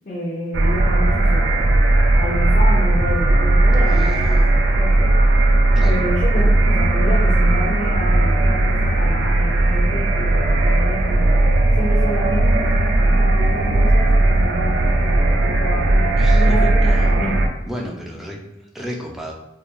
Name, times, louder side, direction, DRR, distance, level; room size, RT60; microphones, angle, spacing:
voice 1, 0.0-1.7 2.1-5.5 5.8-11.4 11.7-17.4, left 1 dB, 45° left, -7 dB, 0.6 m, -29 dB
sound 1, 0.5-17.5, right 2 dB, 80° right, 0.3 m, -16 dB
voice 2, 3.8-4.6 5.8-6.0 16.2-17.1 17.7-19.3, equal, ahead, -2 dB, 0.3 m, -32 dB
3.1 x 2.3 x 2.2 m, 0.88 s
head